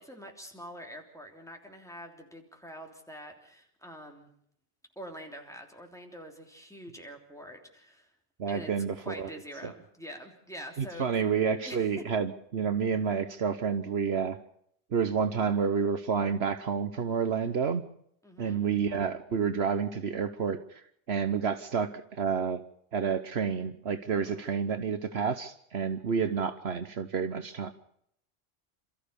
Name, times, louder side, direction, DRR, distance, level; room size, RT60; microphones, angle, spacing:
voice 1, 0.0-4.3 4.9-8.1 8.5-8.7 9.0-11.1 11.6-11.8 18.2-18.6 24.2-24.4, equal, 5° left, 2 dB, 3.2 m, -45 dB
voice 2, 8.4-9.3 9.6-9.7 10.8-14.4 14.9-17.8 18.4-22.6 22.9-27.7, right 6 dB, 65° right, 11 dB, 1.2 m, -29 dB
28.0 x 14.0 x 6.8 m, 0.70 s
omnidirectional pair, 1.2 m